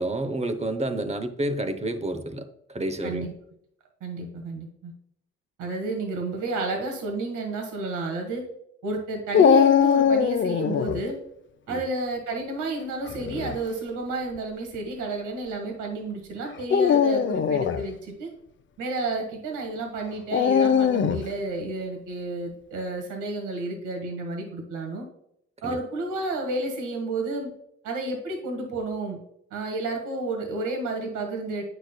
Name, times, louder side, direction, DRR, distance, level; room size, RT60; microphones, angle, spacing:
voice 1, 0.0-3.3 11.7-11.8 25.6-25.8, right 1 dB, 20° right, 0.8 m, -29 dB
voice 2, 3.0-3.3 4.0-4.9 5.6-8.4 8.8-11.2 11.7-18.3 18.8-25.1 25.6-27.5 27.8-29.2 29.5-31.6, right 2 dB, 80° right, 1.6 m, -31 dB
Dog, 9.3-11.0 13.1-13.6 14.4-14.5 16.6-17.8 20.3-21.3, left 7 dB, 40° left, 0.5 m, -20 dB
8.4 x 6.5 x 2.2 m
cardioid pair, 90°, 30 cm